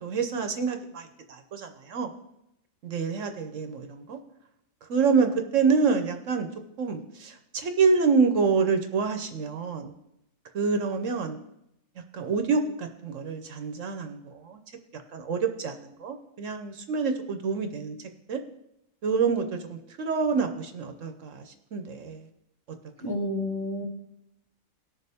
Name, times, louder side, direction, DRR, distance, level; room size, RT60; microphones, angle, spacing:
voice 1, 0.0-2.1 2.8-4.2 4.8-6.5 6.8-9.9 10.5-11.4 12.1-14.6 14.9-18.0 18.3-18.4 19.0-22.3, right 5 dB, 65° right, 7 dB, 1.1 m, -27 dB
voice 2, 23.0-23.8, left 1 dB, 15° left, -1 dB, 1.3 m, -30 dB
18.5 x 6.7 x 3.5 m, 0.83 s
omnidirectional pair, 1.5 m